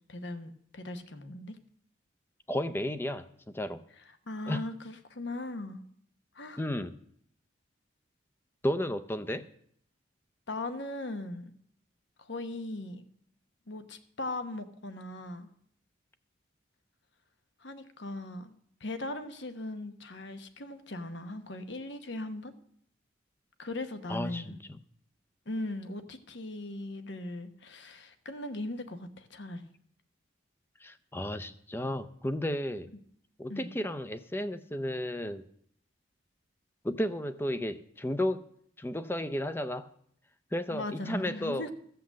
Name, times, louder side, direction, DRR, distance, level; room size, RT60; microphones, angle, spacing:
voice 1, 0.0-1.6 4.3-5.8 6.3-6.6 10.5-11.5 12.2-13.1 13.7-15.5 17.6-22.5 23.6-24.6 25.5-29.7 33.5-33.7 40.7-41.7, left 2 dB, 65° left, 9 dB, 1.0 m, -39 dB
voice 2, 2.5-3.3 3.5-3.8 4.5-4.6 6.6-7.0 8.6-9.4 24.1-24.6 30.8-32.9 33.4-35.4 36.8-38.4 38.8-39.9 40.5-41.7, left 1 dB, 10° left, 12 dB, 0.5 m, -33 dB
15.0 x 5.8 x 7.5 m, 0.67 s
head